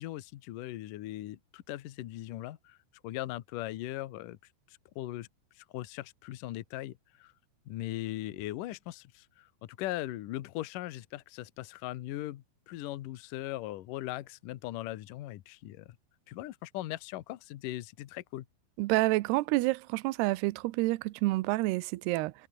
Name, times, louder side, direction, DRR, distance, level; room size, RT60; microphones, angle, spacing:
voice 1, 0.0-2.8 3.0-4.4 4.7-5.3 5.6-7.3 7.7-16.0 16.3-18.5, left 15 dB, 80° left, 1.9 m, -39 dB
voice 2, 18.8-22.3, right 20 dB, 80° right, 2.4 m, -28 dB
omnidirectional pair, 5.5 m